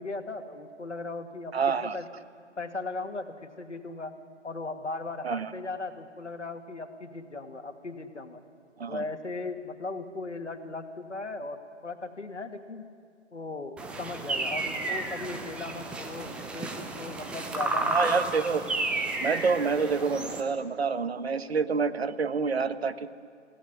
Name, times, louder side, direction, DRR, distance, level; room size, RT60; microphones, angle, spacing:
voice 1, 0.0-2.0 2.6-4.1 4.4-8.4 8.9-12.9 13.3-18.3, left 3 dB, 75° left, 6 dB, 2.5 m, -37 dB
voice 2, 1.5-2.0 5.2-5.5 8.8-9.0 17.8-18.6 19.2-23.1, right 5 dB, 60° right, 12 dB, 1.3 m, -27 dB
sound 1, 13.8-20.4, right 2 dB, 5° right, 0.7 m, -32 dB
27.5 x 17.5 x 9.8 m, 2.2 s
figure-of-eight pair, 135°, 36 cm